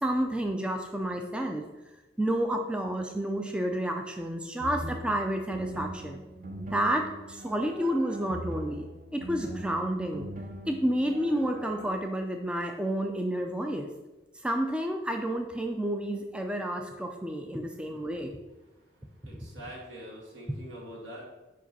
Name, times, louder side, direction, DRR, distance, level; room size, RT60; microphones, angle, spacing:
voice 1, 0.0-1.7 2.2-6.2 6.6-8.9 9.1-10.3 10.7-13.9 14.4-18.3, right 1 dB, 5° right, 4 dB, 0.4 m, -30 dB
sound 1, 4.6-12.0, right 1 dB, 45° right, 0.7 m, -41 dB
voice 2, 19.2-21.2, equal, 75° right, -4 dB, 2.2 m, -44 dB
5.1 x 5.0 x 5.4 m, 1.1 s
head